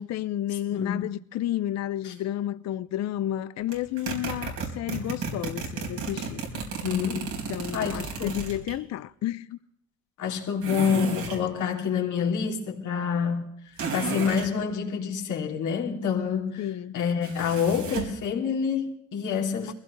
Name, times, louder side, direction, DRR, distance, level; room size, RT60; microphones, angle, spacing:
voice 1, 0.0-6.4 7.5-9.6 16.6-17.0 19.7-19.8, left 12 dB, 60° left, 0.6 m, -31 dB
voice 2, 0.7-1.1 2.0-2.1 6.8-7.3 7.7-8.3 10.2-16.7 16.9-19.7, left 7 dB, 80° left, 3.0 m, -27 dB
sound 1, 3.7-8.8 10.6-11.4 13.8-14.5 17.2-18.2, right 5 dB, 80° right, 4.4 m, -33 dB
22.5 x 16.0 x 3.2 m
cardioid pair, 90°, 30 cm